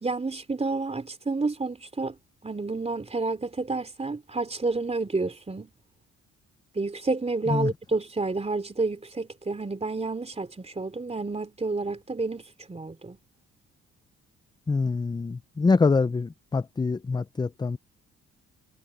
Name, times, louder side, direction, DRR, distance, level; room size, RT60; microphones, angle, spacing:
voice 1, 0.0-2.1 2.4-5.7 6.7-13.2, right 3 dB, 20° right, 3.4 m, -30 dB
voice 2, 14.7-17.8, left 4 dB, 15° left, 0.4 m, -25 dB
cardioid pair, 90°, 30 cm